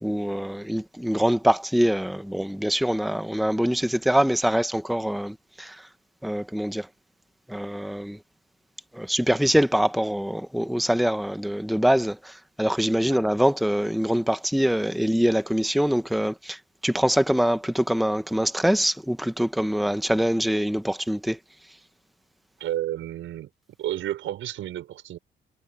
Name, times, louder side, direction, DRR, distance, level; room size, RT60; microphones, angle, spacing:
voice 1, 0.0-5.9 6.2-6.9 7.5-8.2 8.9-21.4, equal, ahead, 1.1 m, -24 dB
voice 2, 22.6-23.5 23.8-25.2, right 13 dB, 80° right, 6.2 m, -31 dB
cardioid pair, 90°, 20 cm